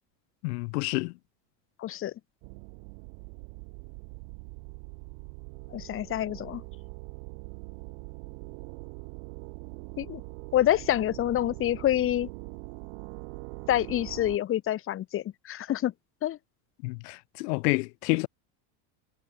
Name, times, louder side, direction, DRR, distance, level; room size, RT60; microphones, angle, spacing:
voice 1, 0.4-1.1 16.8-18.3, left 27 dB, 80° left, 0.8 m, -28 dB
voice 2, 1.8-2.1 5.7-6.6 10.0-10.2 10.5-12.3 13.7-15.9 16.2-16.4, left 12 dB, 30° left, 0.6 m, -27 dB
sound 1, 2.4-14.4, right 40 dB or more, 70° right, 1.4 m, -43 dB
supercardioid pair, 115°, 46 cm